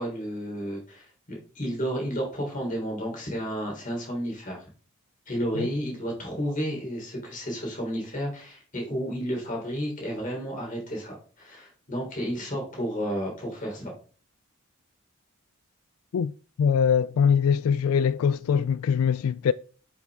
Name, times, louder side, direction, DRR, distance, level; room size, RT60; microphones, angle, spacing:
voice 1, 0.0-4.7 5.3-13.9, equal, 35° left, 3.6 m, -32 dB
voice 2, 16.6-19.5, left 7 dB, 85° left, 0.3 m, -22 dB
7.8 x 7.4 x 3.6 m
head